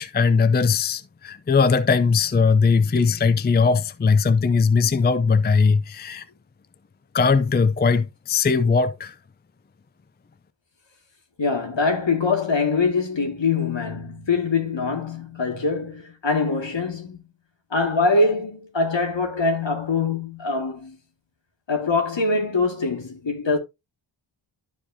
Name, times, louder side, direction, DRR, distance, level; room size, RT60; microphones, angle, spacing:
voice 1, 0.0-6.2 7.1-9.1, left 5 dB, 20° left, 0.4 m, -19 dB
voice 2, 11.4-17.2 17.7-21.0 21.7-23.6, left 3 dB, 60° left, 2.2 m, -23 dB
12.0 x 4.7 x 2.7 m
wide cardioid pair, 75°, 49 cm